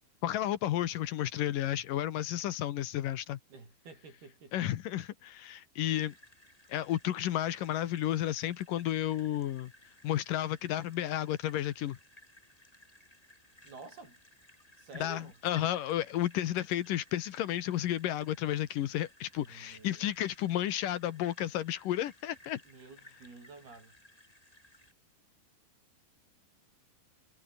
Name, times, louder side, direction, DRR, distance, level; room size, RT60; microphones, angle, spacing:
voice 1, 0.2-3.4 4.5-6.1 6.7-9.7 10.0-12.0 15.0-22.6, left 12 dB, 70° left, 2.6 m, -32 dB
voice 2, 3.5-4.7 13.6-14.2 14.8-15.4 19.4-20.0 22.6-24.0, right 4 dB, 85° right, 10.0 m, -51 dB
sound 1, 5.8-24.9, left 1 dB, 10° left, 5.8 m, -59 dB
omnidirectional pair, 4.3 m